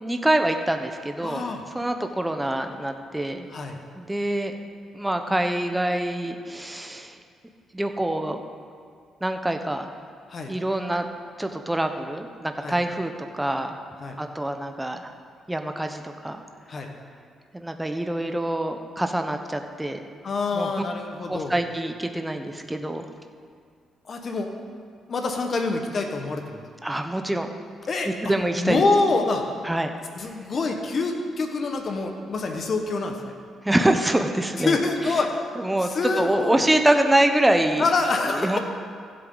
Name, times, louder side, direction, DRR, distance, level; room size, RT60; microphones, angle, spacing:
voice 1, 0.0-1.4 1.7-3.5 4.0-4.5 4.9-7.2 7.7-8.4 9.2-9.9 10.5-11.1 11.4-13.8 14.2-15.1 15.5-16.4 17.5-20.0 20.5-20.7 21.3-23.1 26.8-27.5 28.1-28.8 29.6-29.9 30.2-30.3 33.6-34.7 35.6-35.9 36.2-37.9 38.3-38.6, right 1 dB, 10° right, 5 dB, 0.9 m, -25 dB
voice 2, 1.2-1.6 3.5-3.8 10.3-10.5 12.6-12.8 14.0-14.2 16.7-16.9 20.2-21.6 24.1-24.5 25.1-26.6 27.9-28.1 28.6-29.5 30.1-33.3 34.6-35.4 35.8-36.6 37.8-38.6, left 3 dB, 45° left, 4 dB, 1.4 m, -26 dB
15.5 x 7.9 x 4.0 m, 2.2 s
cardioid pair, 90°, 0 cm